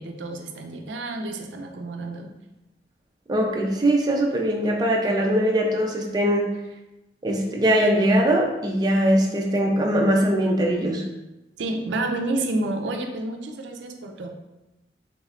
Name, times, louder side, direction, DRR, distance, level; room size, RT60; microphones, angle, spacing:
voice 1, 0.0-2.3 11.6-14.3, right 2 dB, 85° right, 4 dB, 0.4 m, -29 dB
voice 2, 3.3-6.5 7.2-11.0, right 1 dB, 25° right, 0 dB, 0.4 m, -21 dB
3.5 x 3.1 x 2.4 m, 0.98 s
head